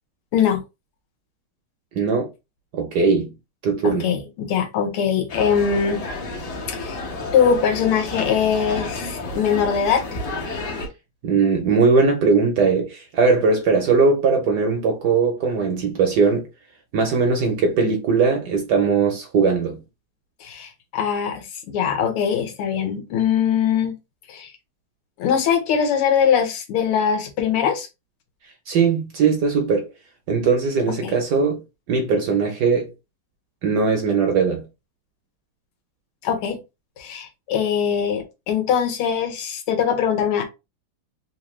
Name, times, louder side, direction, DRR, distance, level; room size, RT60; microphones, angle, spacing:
voice 1, 1.9-2.3 2.7-3.3 3.6-4.1 11.2-16.4 16.9-19.8 28.7-29.9 30.3-31.6 31.9-32.9 33.6-34.6, right 5 dB, 65° right, 1.0 m, -19 dB
voice 2, 3.8-6.0 6.7-7.0 7.3-10.2 20.4-24.0 24.3-24.5 25.2-27.9 31.0-31.2 36.2-36.6 37.0-40.4, left 7 dB, 85° left, 1.8 m, -22 dB
sound 1, 5.3-10.9, left 2 dB, 55° left, 1.4 m, -31 dB
3.8 x 2.6 x 3.0 m
omnidirectional pair, 2.4 m